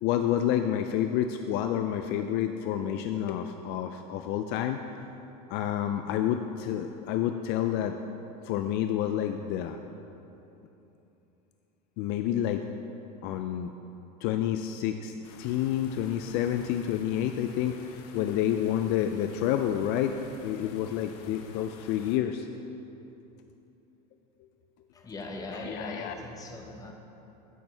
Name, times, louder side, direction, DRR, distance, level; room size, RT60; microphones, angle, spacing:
voice 1, 0.0-4.8 5.5-8.0 8.4-9.8 12.0-12.6 13.2-13.7 14.2-22.5 25.6-26.1, left 10 dB, 55° left, 7 dB, 0.4 m, -29 dB
sound 1, 15.2-22.2, left 5 dB, 70° left, 0.9 m, -50 dB
voice 2, 24.9-26.9, left 2 dB, 20° left, 2 dB, 1.0 m, -39 dB
15.5 x 6.0 x 3.4 m, 3.0 s
supercardioid pair, 125°, 20 cm